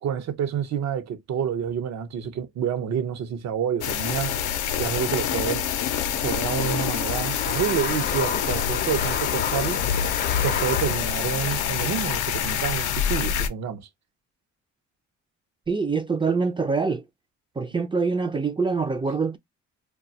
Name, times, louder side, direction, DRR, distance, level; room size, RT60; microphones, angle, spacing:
voice 1, 0.0-4.4 4.8-5.6 6.1-9.8 10.4-13.9, right 8 dB, 65° right, 0.7 m, -28 dB
sound 1, 3.8-13.5, left 9 dB, 80° left, 0.6 m, -26 dB
sound 2, 4.2-11.3, left 7 dB, 35° left, 0.5 m, -33 dB
voice 2, 15.7-17.0 17.6-19.4, right 4 dB, 15° right, 0.4 m, -25 dB
2.4 x 2.2 x 3.9 m
cardioid pair, 90°, 30 cm